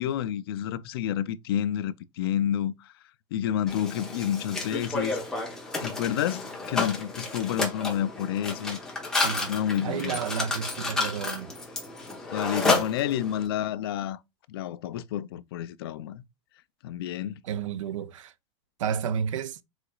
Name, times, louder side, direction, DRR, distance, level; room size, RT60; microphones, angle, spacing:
voice 1, 0.0-2.9 3.3-5.2 5.8-8.8 9.1-10.2 12.3-14.2 14.5-16.2 16.8-17.4, left 10 dB, 50° left, 0.4 m, -29 dB
Mechanisms, 3.7-13.5, left 3 dB, 5° left, 0.9 m, -31 dB
voice 2, 9.1-9.5 9.8-11.5 17.4-18.3 18.8-19.6, right 7 dB, 80° right, 0.6 m, -31 dB
4.9 x 4.0 x 2.3 m
supercardioid pair, 175°, 16 cm